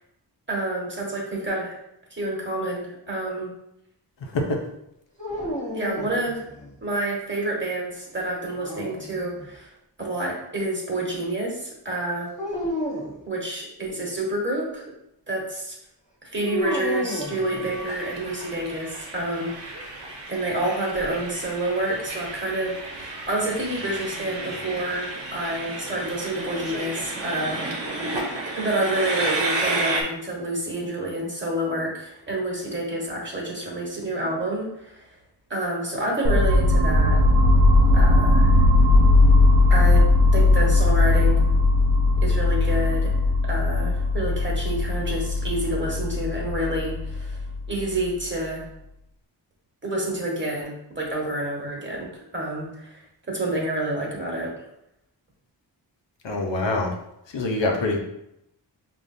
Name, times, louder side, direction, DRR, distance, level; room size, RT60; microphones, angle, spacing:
voice 1, 0.5-1.8 2.1-3.5 5.7-6.5 6.8-9.7 10.0-12.3 13.2-14.8 15.3-15.8 16.3-19.7 20.3-27.6 28.6-35.1 35.5-37.2 37.9-38.5 39.7-40.0 40.3-41.4 42.2-43.1 43.4-47.4 47.7-48.6 49.8-54.5, right 1 dB, 25° right, -3 dB, 1.4 m, -28 dB
sound 1, 5.2-6.8 8.4-9.5 12.4-13.2 16.4-18.1, left 1 dB, 15° left, 1.0 m, -31 dB
Train, 16.6-30.0, right 2 dB, 75° right, 1.0 m, -32 dB
sound 2, 36.2-48.2, left 2 dB, 55° right, 0.7 m, -18 dB
voice 2, 56.2-56.9 57.3-58.0, left 2 dB, 75° left, 1 dB, 0.8 m, -24 dB
5.0 x 2.6 x 2.6 m, 0.81 s
cardioid pair, 65°, 44 cm